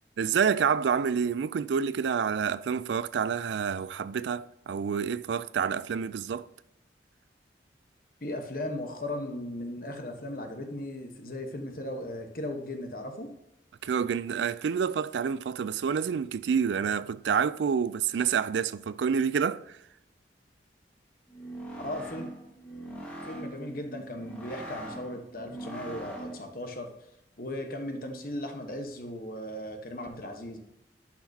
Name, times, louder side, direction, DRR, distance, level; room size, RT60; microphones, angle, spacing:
voice 1, 0.2-6.5 13.8-19.6, right 6 dB, 75° right, 0.3 m, -28 dB
voice 2, 8.2-13.3 21.8-22.3 23.2-26.9 27.4-30.6, left 1 dB, 50° left, 1.2 m, -37 dB
sound 1, 21.3-26.6, right 1 dB, 5° left, 1.6 m, -42 dB
10.5 x 5.8 x 2.8 m
head